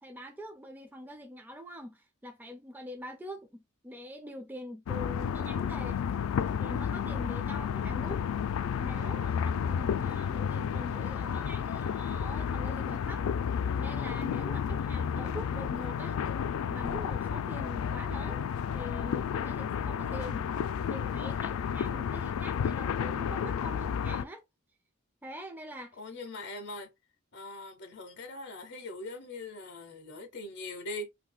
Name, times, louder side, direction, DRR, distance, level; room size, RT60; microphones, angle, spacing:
voice 1, 0.0-6.0 6.6-8.4 8.8-13.3 13.8-16.2 16.7-20.5 20.9-24.4 25.2-26.0, equal, 10° right, 0.4 m, -44 dB
sound 1, 4.9-24.2, left 7 dB, 80° left, 0.3 m, -32 dB
voice 2, 26.0-26.9 27.3-31.1, left 2 dB, 55° left, 0.8 m, -41 dB
3.9 x 2.8 x 2.2 m
head